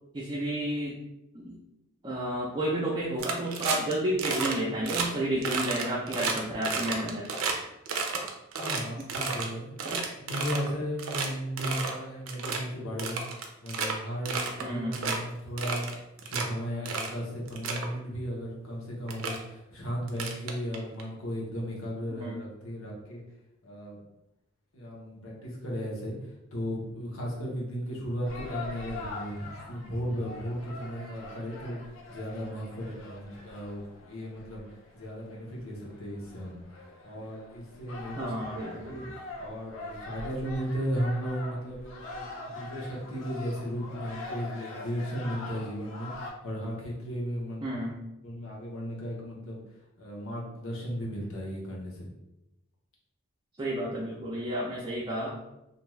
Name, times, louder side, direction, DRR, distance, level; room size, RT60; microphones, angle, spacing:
voice 1, 0.1-1.0 1.3-1.6 2.0-7.3 9.8-10.0 14.6-15.0 22.2-22.4 38.2-39.0 47.6-47.9 53.6-55.3, right 1 dB, 20° right, -5 dB, 0.4 m, -31 dB
sound 1, 3.2-3.9 4.2-4.5 4.8-5.1 5.4-7.5 7.9-9.5 9.8-10.7 11.0-11.3 11.6-11.9 12.3-12.6 13.0-13.9 14.3-14.6 14.9-15.2 15.6-16.4 16.9-17.1 17.5-17.9 18.7-18.8 19.1-19.4 20.1-21.0, right 5 dB, 90° right, 0.4 m, -31 dB
voice 2, 8.6-9.8 10.2-15.9 16.2-23.2 23.6-24.0 24.7-26.2 26.5-31.8 32.1-34.6 34.9-36.6 37.0-38.4 38.8-39.0 39.4-47.8 48.2-49.6 50.0-52.1, equal, 85° left, -3 dB, 0.9 m, -35 dB
sound 2, 28.2-46.3, left 2 dB, 70° left, 0.5 m, -43 dB
2.5 x 2.3 x 3.1 m, 0.89 s
head